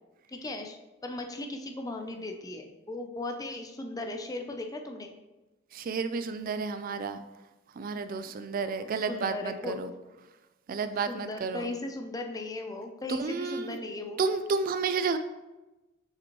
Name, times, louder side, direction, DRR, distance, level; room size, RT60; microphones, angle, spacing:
voice 1, 0.3-0.8 1.0-5.1 8.6-9.8 11.1-14.2, left 2 dB, 20° left, 4 dB, 0.6 m, -37 dB
voice 2, 5.7-7.2 7.8-9.9 10.7-11.7 13.1-13.8 14.2-15.2, right 4 dB, 45° right, 10 dB, 0.3 m, -31 dB
7.1 x 5.2 x 3.1 m, 1.1 s
head